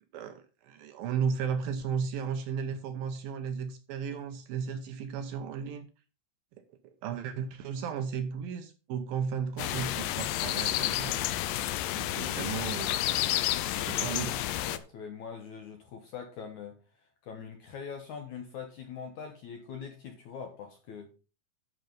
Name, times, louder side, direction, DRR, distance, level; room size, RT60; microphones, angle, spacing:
voice 1, 0.1-5.9 6.8-11.4 11.9-13.2 13.8-14.4, right 7 dB, 75° right, 2.3 m, -35 dB
sound 1, 9.6-14.8, left 14 dB, 90° left, 2.0 m, -30 dB
voice 2, 13.5-14.2 14.5-16.8 17.2-21.1, left 6 dB, 70° left, 1.9 m, -43 dB
11.5 x 5.6 x 5.3 m
omnidirectional pair, 4.8 m